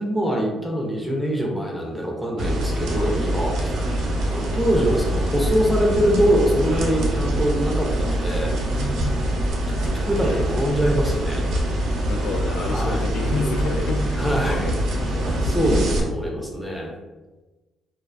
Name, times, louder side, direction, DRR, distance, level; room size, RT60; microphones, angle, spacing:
voice 1, 0.0-3.7 4.3-8.5 9.7-9.8 10.0-11.4 12.6-13.1 14.2-14.7 15.4-16.9, equal, ahead, -1 dB, 0.4 m, -23 dB
sound 1, 2.4-16.0, right 1 dB, 85° right, 0.5 m, -24 dB
voice 2, 8.6-9.2 12.1-15.7, left 2 dB, 80° left, 3 dB, 0.3 m, -30 dB
2.3 x 2.2 x 2.4 m, 1.1 s
cardioid pair, 160°, 0 cm